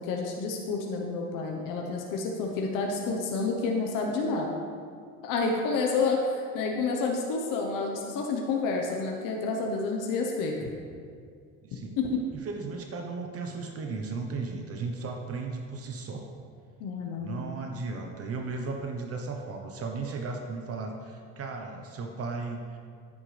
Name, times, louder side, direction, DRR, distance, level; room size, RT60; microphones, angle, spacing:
voice 1, 0.0-4.6 5.2-10.6 12.0-12.2 16.8-17.4, left 4 dB, 80° left, 0 dB, 1.1 m, -29 dB
voice 2, 11.6-12.0 12.4-16.2 17.2-22.8, right 4 dB, 45° right, 2 dB, 1.0 m, -35 dB
9.8 x 9.2 x 3.4 m, 2.2 s
cardioid pair, 120°, 32 cm